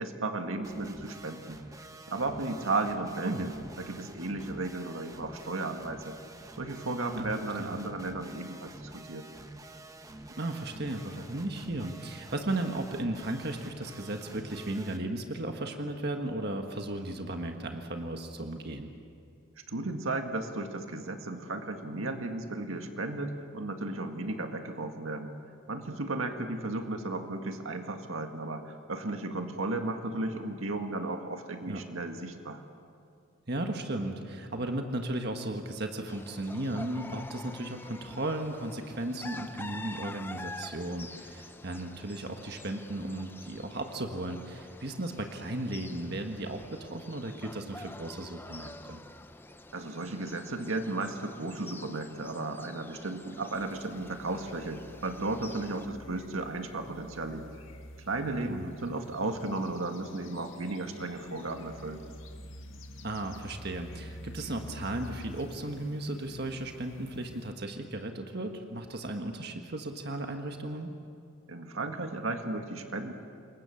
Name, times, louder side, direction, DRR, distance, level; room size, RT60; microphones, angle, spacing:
voice 1, 0.0-3.5 3.8-6.2 6.6-9.3 19.7-25.3 25.7-32.6 49.7-57.5 58.1-62.1 71.5-73.1, right 2 dB, 85° right, 5 dB, 1.9 m, -34 dB
sound 1, 0.6-15.0, right 1 dB, 15° right, 1.0 m, -48 dB
voice 2, 10.4-18.9 31.7-31.8 33.5-49.0 58.4-58.7 63.0-70.9, right 1 dB, 50° right, 4 dB, 1.6 m, -35 dB
sound 2, 36.1-55.9, left 2 dB, 10° left, 0.6 m, -47 dB
sound 3, 53.5-67.5, left 1 dB, 80° left, 1.9 m, -48 dB
27.5 x 22.5 x 7.1 m, 2.4 s
head